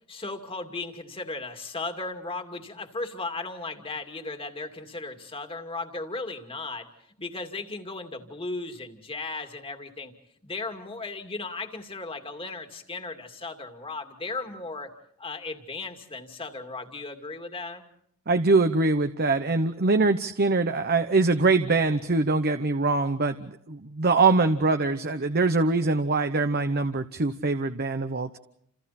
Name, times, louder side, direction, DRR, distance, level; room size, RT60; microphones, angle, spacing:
voice 1, 0.1-6.9 7.2-10.1 10.4-14.9 15.2-17.8, left 3 dB, 25° left, 5 dB, 2.5 m, -36 dB
voice 2, 18.3-28.4, right 3 dB, 45° right, 8 dB, 0.9 m, -23 dB
29.5 x 28.5 x 4.3 m, 0.70 s
head